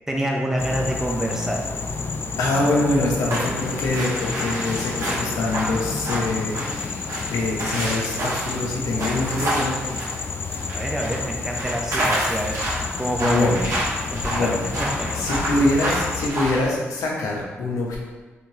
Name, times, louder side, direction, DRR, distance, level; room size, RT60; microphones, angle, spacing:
voice 1, 0.1-1.7 10.7-12.6 13.0-13.6 14.1-14.5 14.8-15.3, equal, 10° right, 0 dB, 0.5 m, -26 dB
sound 1, 0.6-16.3, left 4 dB, 45° left, 0.3 m, -30 dB
voice 2, 2.4-10.0 13.2-13.6 14.3-14.6 15.1-18.0, left 2 dB, 80° left, -2 dB, 0.7 m, -24 dB
sound 2, 3.3-10.8 11.0-16.7, right 1 dB, 65° right, 1.4 m, -28 dB
3.5 x 3.0 x 2.8 m, 1.3 s
supercardioid pair, 55°, 5 cm